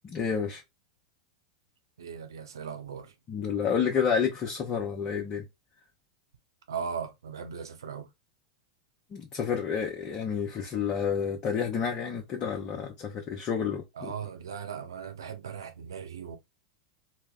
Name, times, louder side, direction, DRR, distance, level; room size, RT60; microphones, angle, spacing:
voice 1, 0.0-0.6 3.3-5.4 9.1-14.1, left 7 dB, 35° left, 0.8 m, -30 dB
voice 2, 2.0-3.1 6.7-8.1 14.0-16.4, right 7 dB, 80° right, 0.7 m, -38 dB
3.1 x 2.1 x 3.6 m
hypercardioid pair, 95°, 2 cm